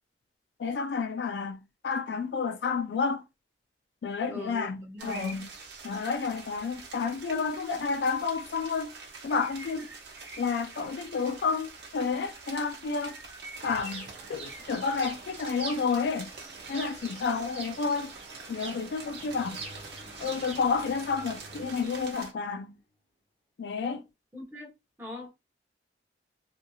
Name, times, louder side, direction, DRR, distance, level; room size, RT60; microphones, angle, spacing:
voice 1, 0.6-1.6 1.8-3.2 4.0-5.5 5.8-8.9 9.2-9.9 10.4-13.2 13.6-16.3 16.7-18.1 18.5-19.6 20.2-22.7 23.6-24.0, left 5 dB, 70° left, 0.3 m, -30 dB
voice 2, 4.3-5.5 24.3-24.7 25.0-25.3, left 1 dB, 15° right, 0.8 m, -41 dB
sound 1, 5.0-22.3, right 3 dB, 65° right, 0.9 m, -46 dB
sound 2, 13.5-22.1, right 3 dB, 35° right, 0.6 m, -45 dB
sound 3, 19.2-22.9, left 1 dB, 35° left, 1.0 m, -53 dB
2.7 x 2.7 x 2.3 m
head